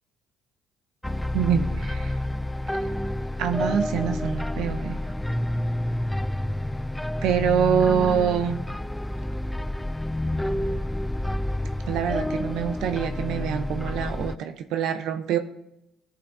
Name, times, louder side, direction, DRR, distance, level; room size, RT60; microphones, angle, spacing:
sound 1, 1.0-14.4, left 1 dB, 5° left, 0.3 m, -29 dB
voice 1, 1.3-2.2 2.8-2.9 3.4-5.0 7.2-8.6 11.9-15.4, right 8 dB, 75° right, 8 dB, 0.6 m, -25 dB
14.0 x 8.4 x 2.7 m, 0.83 s
hypercardioid pair, 60°, 0 cm